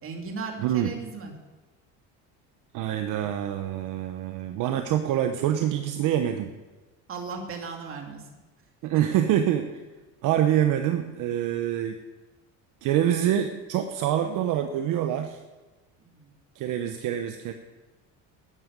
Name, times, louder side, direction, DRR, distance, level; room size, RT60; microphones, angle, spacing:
voice 1, 0.0-1.3 7.1-8.2 16.0-16.3, right 5 dB, 40° right, 2 dB, 2.7 m, -36 dB
voice 2, 2.7-6.5 8.8-9.8 10.2-12.0 12.8-15.4 16.5-17.5, right 11 dB, 65° right, 7 dB, 1.0 m, -25 dB
12.5 x 9.8 x 6.8 m, 1.2 s
cardioid pair, 135°, 34 cm